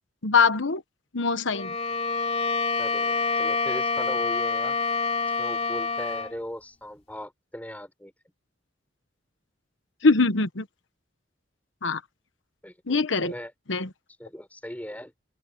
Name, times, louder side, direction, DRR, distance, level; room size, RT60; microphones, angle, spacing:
voice 1, 0.2-0.8 1.1-1.7 10.0-10.6 11.8-12.0 12.9-13.3 13.7-13.9, left 4 dB, 80° left, 1.1 m, -22 dB
Bowed string instrument, 1.5-6.4, left 4 dB, 35° left, 2.8 m, -27 dB
voice 2, 2.8-4.8 5.4-8.1 12.6-13.5 14.2-15.1, equal, 10° left, 5.9 m, -38 dB
open air
head